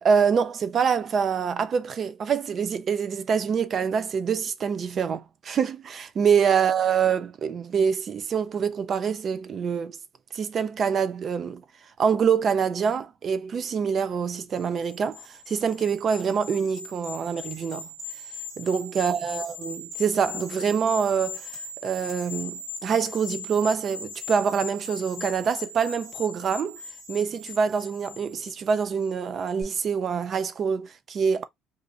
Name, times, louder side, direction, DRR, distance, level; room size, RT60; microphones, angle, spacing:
voice 1, 0.0-10.0 10.3-11.6 12.0-17.9 18.6-26.8 27.1-31.4, right 6 dB, 30° right, 0.3 m, -25 dB
sound 1, 14.5-29.1 29.5-29.6, left 3 dB, 70° right, 1.6 m, -39 dB
2.5 x 2.4 x 3.9 m
cardioid pair, 175°, 0 cm